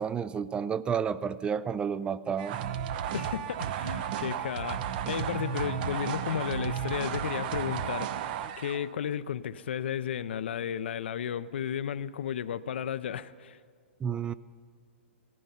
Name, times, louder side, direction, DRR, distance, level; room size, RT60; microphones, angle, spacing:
voice 1, 0.0-2.6 14.0-14.3, right 7 dB, 15° right, 0.3 m, -31 dB
sound 1, 2.4-8.9, right 9 dB, 50° right, 0.7 m, -33 dB
voice 2, 3.1-8.1 8.6-13.6, left 9 dB, 70° left, 0.5 m, -33 dB
Wind instrument woodwind instrument, 4.2-8.3, right 2 dB, 85° right, 4.1 m, -52 dB
16.5 x 14.0 x 5.6 m
hypercardioid pair, 120°, 6 cm